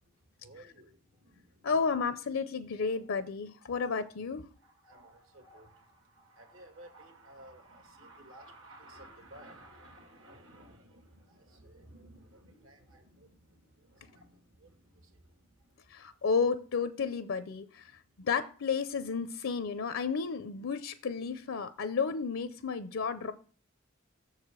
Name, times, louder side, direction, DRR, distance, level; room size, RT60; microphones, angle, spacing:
voice 1, 0.0-1.7 2.6-2.7 4.6-16.2 17.9-18.2, right 1 dB, 75° right, 4 dB, 2.3 m, -55 dB
voice 2, 1.6-4.4 15.9-17.9 18.2-23.3, left 5 dB, 70° left, 12 dB, 0.5 m, -32 dB
6.9 x 4.9 x 6.1 m, 0.42 s
head